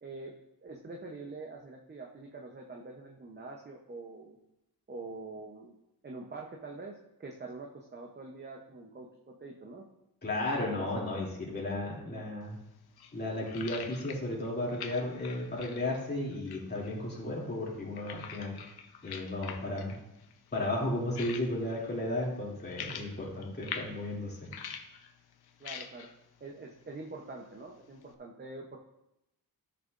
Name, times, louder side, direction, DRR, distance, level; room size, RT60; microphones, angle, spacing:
voice 1, 0.0-0.3 0.6-4.4 4.9-5.7 6.0-9.9 10.8-11.2 12.0-12.3 25.6-26.1 26.4-28.8, right 3 dB, 30° right, 0 dB, 0.8 m, -45 dB
voice 2, 10.2-12.6 13.1-18.6 19.0-19.9 20.5-24.5, left 1 dB, 25° left, -5 dB, 2.8 m, -34 dB
sound 1, 12.4-28.1, left 7 dB, 85° left, 0.8 m, -47 dB
14.5 x 6.8 x 2.5 m, 0.87 s
wide cardioid pair, 170°, 37 cm